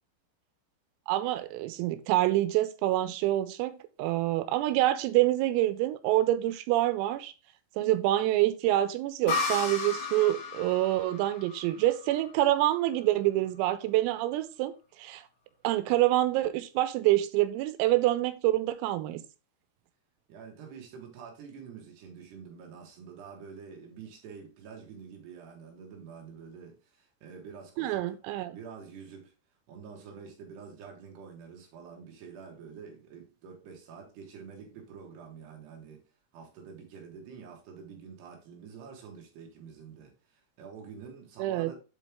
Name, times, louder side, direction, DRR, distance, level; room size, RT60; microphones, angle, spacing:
voice 1, 1.1-7.3 7.8-15.3 15.7-19.2 27.8-28.6 41.4-41.7, right 15 dB, 90° right, 3.4 m, -26 dB
sound 1, 9.3-12.8, left 4 dB, 45° left, 2.7 m, -34 dB
voice 2, 20.3-28.1 28.5-29.3 29.7-36.1 36.3-41.8, right 6 dB, 65° right, 3.3 m, -47 dB
8.0 x 5.3 x 3.5 m
omnidirectional pair, 6.0 m